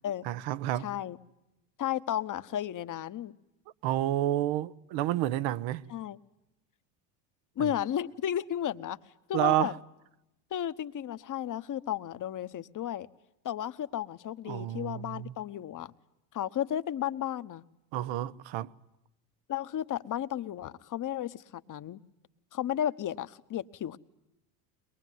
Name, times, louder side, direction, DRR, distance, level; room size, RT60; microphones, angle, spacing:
voice 1, 0.2-0.9 3.8-5.8 7.6-7.7 9.3-9.7 14.5-15.3 17.9-18.7, right 14 dB, 65° right, 1.2 m, -30 dB
voice 2, 0.8-1.2 1.8-3.4 5.9-6.2 7.6-9.0 9.3-9.7 10.5-13.1 13.4-15.9 16.3-17.6 19.5-22.0 22.5-24.0, left 10 dB, 40° left, 1.2 m, -33 dB
22.5 x 22.0 x 9.4 m
supercardioid pair, 90°, 50 cm